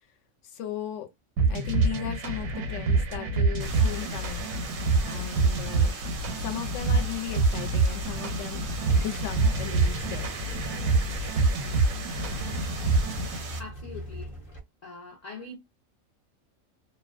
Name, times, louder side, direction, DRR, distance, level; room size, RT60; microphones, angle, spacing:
voice 1, 0.4-1.1 1.5-4.5 5.0-6.0 6.4-10.4, left 11 dB, 70° left, 0.8 m, -37 dB
sound 1, 1.4-13.4, right 3 dB, 90° right, 1.0 m, -26 dB
sound 2, 3.6-13.6, right 4 dB, 55° right, 0.6 m, -40 dB
sound 3, 8.7-14.6, equal, 30° left, 0.8 m, -40 dB
voice 2, 13.6-14.4 14.8-15.6, left 3 dB, 55° left, 0.5 m, -42 dB
2.4 x 2.1 x 2.4 m
omnidirectional pair, 1.4 m